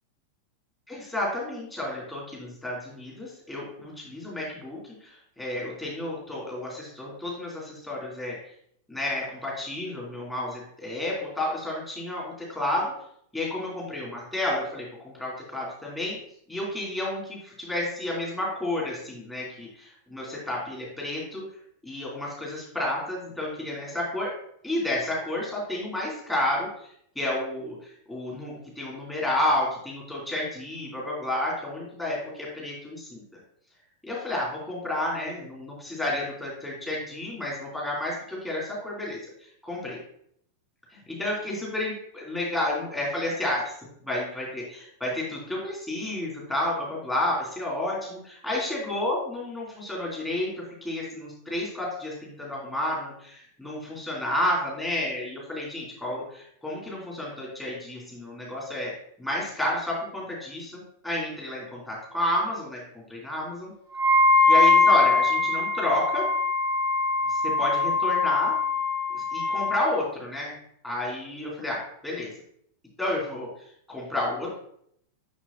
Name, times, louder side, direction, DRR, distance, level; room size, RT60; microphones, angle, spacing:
voice 1, 0.9-8.4 8.9-12.9 13.3-16.2 16.5-21.4 21.8-24.3 24.6-26.7 27.1-33.2 34.0-39.2 39.6-40.0 40.9-58.9 59.2-63.7 64.5-66.2 67.3-68.5 69.1-70.5 70.8-72.3 73.0-73.5 73.9-74.6, left 1 dB, 10° left, -5 dB, 2.7 m, -31 dB
Wind instrument woodwind instrument, 63.9-69.8, left 3 dB, 60° left, 1.9 m, -22 dB
6.4 x 6.0 x 2.8 m, 0.69 s
figure-of-eight pair, 90°, 0 cm